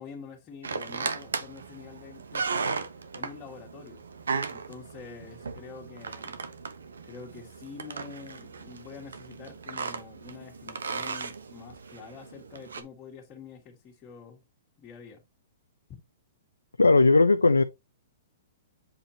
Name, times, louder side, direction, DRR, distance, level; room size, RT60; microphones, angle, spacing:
voice 1, 0.0-2.8 3.1-4.0 4.5-6.4 7.0-14.4 14.8-15.2, left 6 dB, 30° left, 2.3 m, -46 dB
sound 1, 0.6-12.8, right 5 dB, 80° right, 1.1 m, -36 dB
voice 2, 16.8-17.6, left 3 dB, 90° left, 0.5 m, -18 dB
7.8 x 4.3 x 2.9 m
hypercardioid pair, 115°, 0 cm